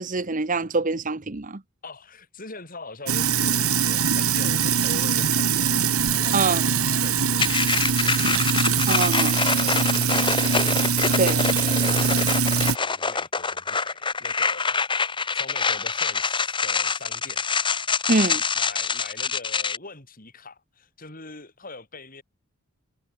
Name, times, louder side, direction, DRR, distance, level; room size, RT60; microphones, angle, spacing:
voice 1, 0.0-1.6 6.3-6.7 8.9-9.3 11.2-11.4 18.1-18.4, right 3 dB, 35° right, 1.0 m, -24 dB
voice 2, 1.8-5.9 6.1-8.5 9.0-11.5 11.8-14.8 15.3-17.4 18.5-22.2, left 3 dB, 40° left, 6.6 m, -42 dB
Sink (filling or washing), 3.1-12.8, right 6 dB, 80° right, 2.7 m, -22 dB
sound 1, 7.4-19.8, left 5 dB, 20° left, 1.9 m, -25 dB
head